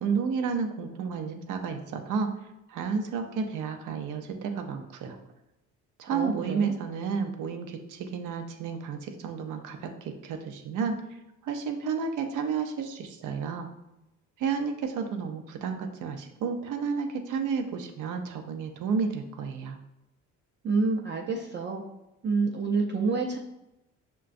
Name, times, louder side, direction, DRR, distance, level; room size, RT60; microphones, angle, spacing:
voice 1, 0.0-2.3 2.7-5.2 6.0-11.0 11.4-13.7 14.4-19.8, right 5 dB, 85° right, 5 dB, 0.6 m, -31 dB
voice 2, 6.1-6.7 20.6-21.8 22.2-23.4, right 4 dB, 35° right, 0 dB, 0.5 m, -28 dB
5.7 x 2.2 x 2.5 m, 0.91 s
cardioid pair, 90°, 30 cm